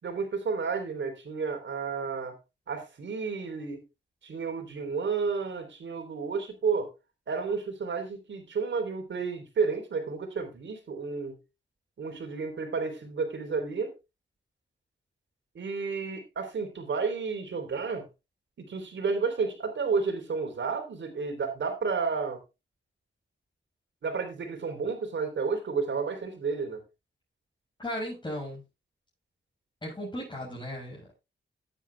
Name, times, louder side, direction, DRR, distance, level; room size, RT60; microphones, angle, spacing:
voice 1, 0.0-2.3 2.7-3.8 4.2-6.9 7.3-11.4 12.0-13.9 15.6-18.1 18.6-22.4 24.0-26.8, right 5 dB, 75° right, 6 dB, 3.7 m, -31 dB
voice 2, 27.8-28.6 29.8-31.2, equal, 25° left, -5 dB, 6.7 m, -36 dB
17.0 x 9.1 x 2.3 m, 0.25 s
cardioid pair, 70°, 19 cm